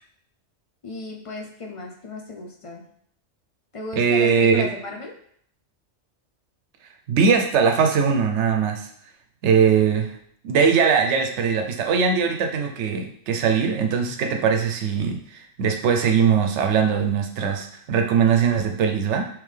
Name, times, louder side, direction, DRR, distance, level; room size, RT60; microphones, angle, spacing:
voice 1, 0.8-2.8 3.7-5.2, left 2 dB, 55° left, 0 dB, 0.3 m, -35 dB
voice 2, 4.0-4.7 7.1-8.9 9.4-10.2 10.4-19.3, right 6 dB, 75° right, 4 dB, 0.8 m, -20 dB
3.6 x 3.2 x 3.2 m, 0.66 s
omnidirectional pair, 1.2 m